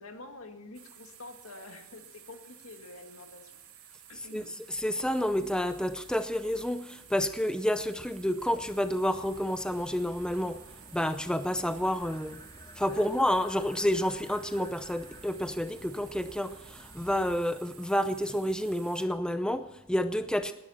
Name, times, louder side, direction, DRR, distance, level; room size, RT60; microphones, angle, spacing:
voice 1, 0.0-4.5 12.9-13.1, left 2 dB, 70° left, 5 dB, 2.1 m, -47 dB
sound 1, 0.7-19.1, right 10 dB, 80° right, 2.9 m, -53 dB
voice 2, 4.7-10.6 10.9-12.4 12.8-20.5, equal, 5° left, 10 dB, 0.6 m, -29 dB
sound 2, 8.4-17.4, equal, 20° left, 2.9 m, -52 dB
19.0 x 10.5 x 5.7 m, 0.93 s
head